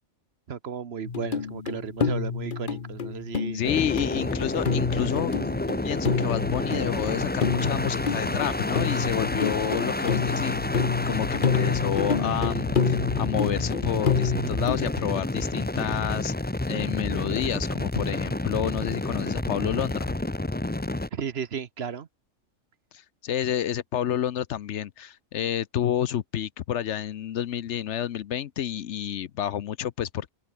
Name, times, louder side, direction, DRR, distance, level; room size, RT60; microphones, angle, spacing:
voice 1, 0.5-3.6 21.1-22.1, right 7 dB, 55° right, 1.1 m, -34 dB
sound 1, 1.1-14.8, left 6 dB, 40° left, 1.1 m, -28 dB
voice 2, 3.5-5.3 5.8-10.6 11.0-16.3 16.7-20.2 22.9-30.3, left 10 dB, 65° left, 1.0 m, -29 dB
sound 2, 3.6-21.1, left 2 dB, 10° left, 0.5 m, -29 dB
omnidirectional pair, 1.3 m